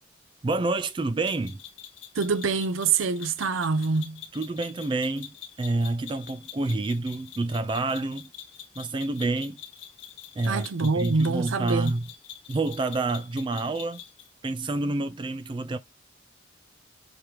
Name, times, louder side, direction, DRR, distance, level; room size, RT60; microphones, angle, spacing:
voice 1, 0.4-1.6 4.3-8.3 8.8-9.6 10.4-12.1 12.5-14.0 14.4-15.8, right 2 dB, 25° right, 0.3 m, -28 dB
sound 1, 1.2-14.3, left 10 dB, 70° left, 1.1 m, -45 dB
voice 2, 2.2-4.2 10.4-11.9, right 4 dB, 85° right, 0.6 m, -25 dB
5.1 x 3.1 x 2.9 m
head